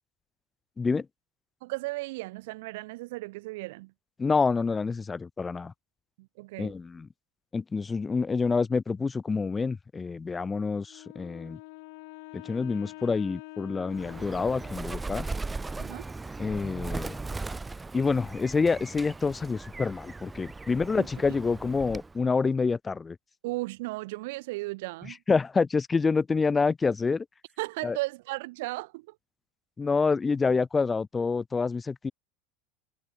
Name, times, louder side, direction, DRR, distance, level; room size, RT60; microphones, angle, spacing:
voice 1, 1.6-3.9 6.2-6.7 15.8-16.1 21.0-21.1 23.4-25.2 27.6-29.1, right 22 dB, 75° right, 5.0 m, -35 dB
voice 2, 4.2-5.7 6.6-7.1 7.5-11.6 12.3-15.3 16.4-17.2 17.9-23.2 25.3-27.2 27.8-28.0 29.8-32.1, left 4 dB, 20° left, 1.2 m, -27 dB
Wind instrument woodwind instrument, 10.9-15.1, left 28 dB, 70° left, 2.3 m, -46 dB
Bird, 13.9-22.2, right 3 dB, 15° right, 1.6 m, -38 dB
supercardioid pair, 110°, 0 cm